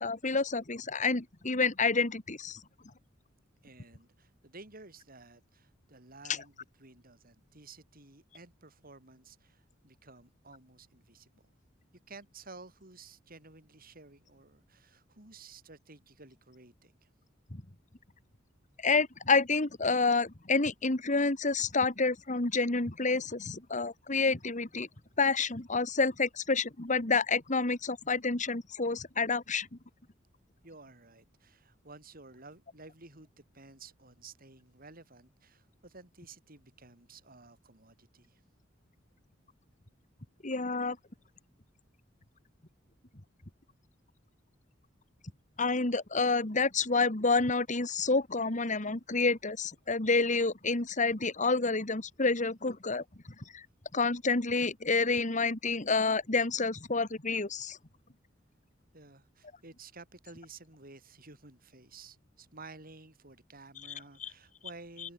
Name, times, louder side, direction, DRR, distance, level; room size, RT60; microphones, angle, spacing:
voice 1, 0.0-2.6 17.5-17.6 18.8-24.9 25.2-29.7 40.4-41.0 45.6-53.0 53.5-53.6 53.9-57.8 64.2-64.3, left 4 dB, 40° left, 2.0 m, -29 dB
voice 2, 3.6-11.4 12.1-16.9 30.6-33.3 33.5-38.4 58.9-65.1, right 3 dB, 50° right, 6.8 m, -53 dB
head